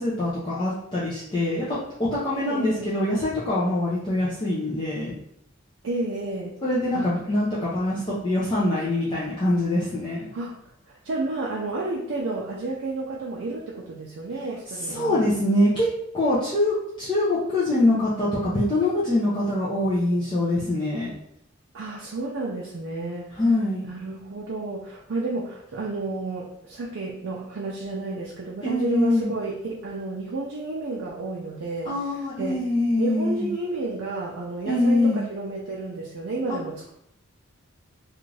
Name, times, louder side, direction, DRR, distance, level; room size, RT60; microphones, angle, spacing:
voice 1, 0.0-5.1 6.6-10.3 14.9-21.1 23.4-23.8 28.6-29.3 31.8-33.5 34.7-35.2 36.5-36.6, left 1 dB, 20° left, -9 dB, 0.5 m, -24 dB
voice 2, 2.3-2.9 5.8-6.5 6.9-7.1 10.3-10.5 10.9-15.2 21.7-23.4 23.8-31.9 32.4-32.6 33.0-36.9, right 2 dB, 70° right, -4 dB, 0.4 m, -31 dB
2.5 x 2.4 x 3.1 m, 0.75 s
head